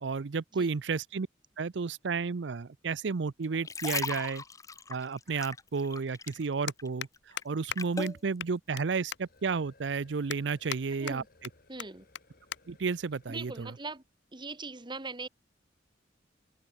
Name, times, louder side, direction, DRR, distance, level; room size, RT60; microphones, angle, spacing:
voice 1, 0.0-1.3 1.6-4.4 4.9-7.1 7.4-11.2 12.7-13.7, right 5 dB, 75° right, 0.6 m, -32 dB
sound 1, 3.4-6.5 6.8-8.2 8.8-9.0, left 4 dB, 20° left, 0.5 m, -38 dB
sound 2, 6.3-6.4 6.7-7.1 7.4-7.5 7.7-7.8 8.1-8.2 8.4-8.8 9.1-9.2 9.7-9.8 10.3-10.8 11.1-11.5 11.8-11.9 12.1-12.2 12.5-12.6 12.9-13.2 13.9-14.2, left 9 dB, 70° left, 0.9 m, -38 dB
sound 3, 9.1-14.1, left 2 dB, 55° left, 2.8 m, -62 dB
voice 2, 10.9-11.3 11.7-12.1 13.3-14.0 14.3-15.3, right 3 dB, 25° right, 1.8 m, -40 dB
head